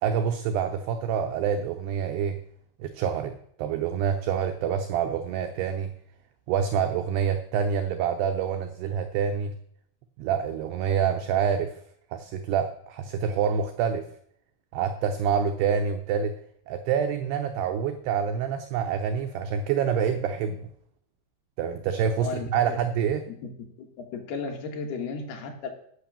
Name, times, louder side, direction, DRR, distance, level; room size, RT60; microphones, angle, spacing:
voice 1, 0.0-2.4 2.8-3.3 3.6-5.9 6.5-9.5 10.2-11.7 12.1-14.1 14.7-16.3 16.7-20.7 21.6-23.3, right 7 dB, 90° right, 6 dB, 2.3 m, -27 dB
voice 2, 22.2-22.8 23.3-23.5 23.8-25.7, left 5 dB, 65° left, 3 dB, 2.9 m, -35 dB
11.5 x 5.9 x 7.1 m, 0.67 s
omnidirectional pair, 5.6 m